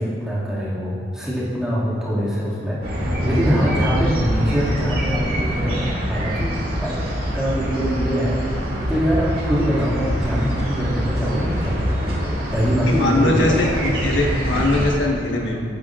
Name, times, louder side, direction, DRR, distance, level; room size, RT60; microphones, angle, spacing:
voice 1, 0.0-7.0 7.3-8.4 8.9-11.8 12.5-13.8, equal, 5° right, -10 dB, 2.2 m, -23 dB
sound 1, 2.8-14.9, equal, 50° right, 2.2 m, -24 dB
voice 2, 12.9-15.6, left 2 dB, 85° left, -1 dB, 1.4 m, -21 dB
14.5 x 10.5 x 2.5 m, 2.4 s
head